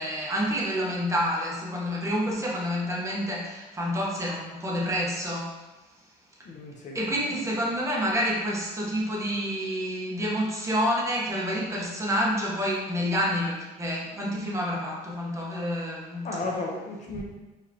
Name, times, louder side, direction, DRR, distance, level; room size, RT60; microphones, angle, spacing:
voice 1, 0.0-5.5 6.9-16.2 17.1-17.2, equal, 15° right, -4 dB, 1.2 m, -28 dB
voice 2, 6.4-7.0 16.2-17.2, left 2 dB, 45° left, -1 dB, 0.9 m, -33 dB
4.8 x 3.5 x 2.9 m, 1.1 s
cardioid pair, 110°, 17 cm